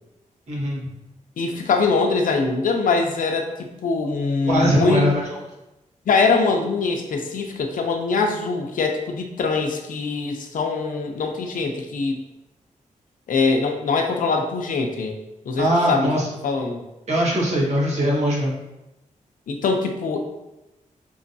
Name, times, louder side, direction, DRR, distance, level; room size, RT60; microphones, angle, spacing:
voice 1, 0.5-0.9 4.4-5.3 15.6-16.3 17.1-18.5, equal, 55° right, -5 dB, 1.4 m, -21 dB
voice 2, 1.4-5.1 6.1-12.2 13.3-15.2 15.5-16.1 16.4-16.8 19.5-20.2, left 4 dB, 85° left, 3 dB, 0.6 m, -23 dB
5.5 x 3.0 x 2.6 m, 0.96 s
wide cardioid pair, 115°, 13 cm